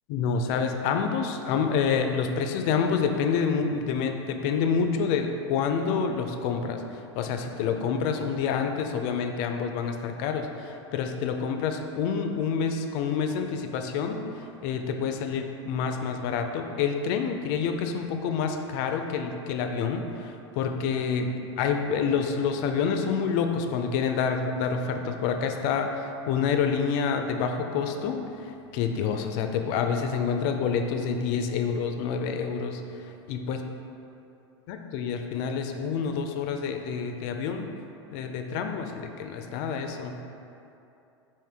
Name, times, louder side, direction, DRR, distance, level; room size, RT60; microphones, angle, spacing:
voice 1, 0.1-32.8 33.3-33.6 34.7-37.7 38.1-40.2, left 6 dB, 55° left, 5 dB, 0.4 m, -28 dB
3.6 x 2.6 x 3.4 m, 2.7 s
hypercardioid pair, 95°, 15 cm